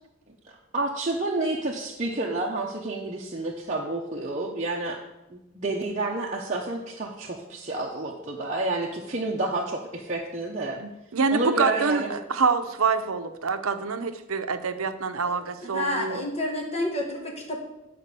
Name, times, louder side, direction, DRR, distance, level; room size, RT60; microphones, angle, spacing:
voice 1, 0.7-5.0 5.3-10.8 11.3-12.2, right 2 dB, 35° right, -3 dB, 0.9 m, -29 dB
voice 2, 10.8-16.2, right 5 dB, 90° right, 9 dB, 0.8 m, -26 dB
voice 3, 15.2-17.6, left 1 dB, 30° left, -1 dB, 2.1 m, -30 dB
8.9 x 5.1 x 6.8 m, 0.92 s
head